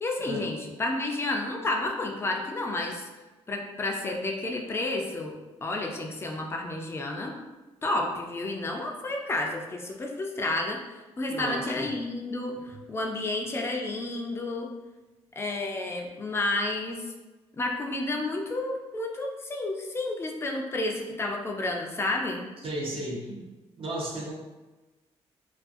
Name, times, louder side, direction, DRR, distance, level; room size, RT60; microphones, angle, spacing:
voice 1, 0.0-3.1 3.5-7.4 7.8-10.8 11.2-14.7 15.4-17.1 17.5-22.5, left 2 dB, 20° left, 1 dB, 0.4 m, -31 dB
voice 2, 11.3-11.9 22.6-23.4 23.8-24.3, right 1 dB, 55° right, -3 dB, 0.6 m, -34 dB
2.4 x 2.3 x 2.5 m, 1.2 s
cardioid pair, 95°, 12 cm